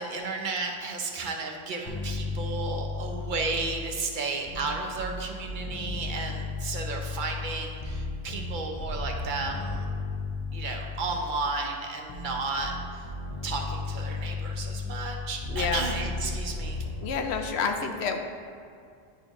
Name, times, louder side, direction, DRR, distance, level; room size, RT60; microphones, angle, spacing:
voice 1, 0.0-9.9 10.5-13.1 13.4-16.8, right 3 dB, 55° right, 2 dB, 0.8 m, -33 dB
sound 1, 1.9-4.0 4.5-11.6 12.1-17.1, left 3 dB, 35° left, 0.6 m, -34 dB
voice 2, 15.5-15.8 17.0-18.2, left 5 dB, 85° left, 5 dB, 0.9 m, -29 dB
9.8 x 4.4 x 2.9 m, 2.3 s
omnidirectional pair, 1.1 m